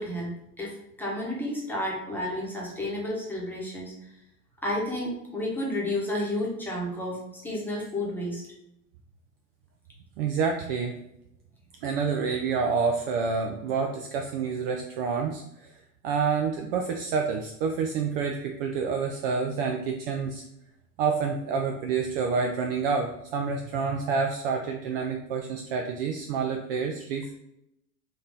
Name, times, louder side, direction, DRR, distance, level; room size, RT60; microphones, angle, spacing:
voice 1, 0.0-4.1 4.6-8.5, left 1 dB, 5° left, -4 dB, 1.2 m, -31 dB
voice 2, 10.2-11.0 11.8-15.8 16.0-20.4 21.0-27.3, right 5 dB, 40° right, 3 dB, 0.4 m, -28 dB
3.5 x 2.8 x 3.8 m, 0.82 s
figure-of-eight pair, 90°, 47 cm